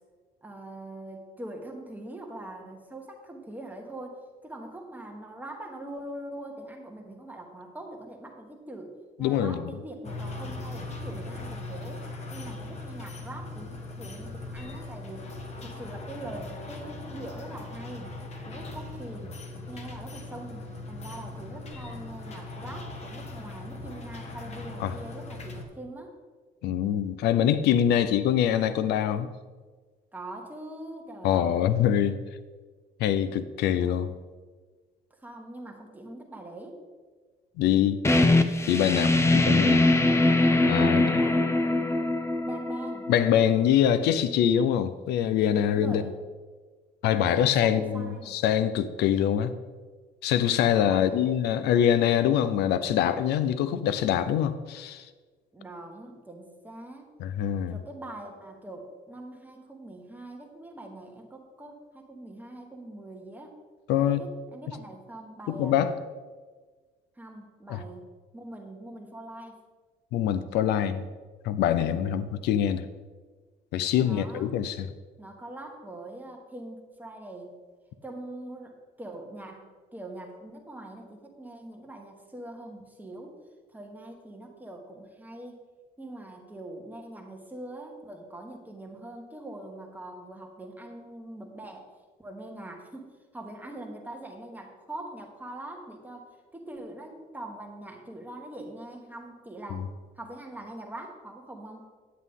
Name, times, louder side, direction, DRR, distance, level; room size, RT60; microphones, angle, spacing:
voice 1, 0.4-12.0 12.3-18.1 18.4-19.4 19.7-26.2 30.1-31.8 35.1-36.8 40.8-42.1 42.4-43.1 45.6-46.2 47.3-48.4 50.7-51.4 55.5-57.1 57.7-63.5 64.0-65.9 67.2-68.0 68.3-69.6 71.9-72.2 74.0-74.5 75.2-77.5 78.0-83.4 83.7-85.6 86.0-91.9 92.2-101.9, right 1 dB, 10° right, 1 dB, 1.3 m, -43 dB
voice 2, 9.2-9.6 24.8-24.9 26.6-29.3 31.2-32.2 33.0-34.1 37.6-38.0 38.7-39.8 40.7-41.2 43.1-46.0 47.0-49.5 50.2-55.1 57.2-57.8 63.9-64.3 65.5-65.9 67.7-67.8 70.1-71.1 71.4-72.8 73.7-74.9, left 10 dB, 80° left, 13 dB, 0.6 m, -24 dB
sound 1, 10.0-25.6, left 2 dB, 40° left, 1.3 m, -39 dB
sound 2, 38.0-43.5, left 2 dB, 15° left, 0.6 m, -22 dB
9.4 x 8.2 x 3.7 m, 1.4 s
cardioid pair, 110°, 17 cm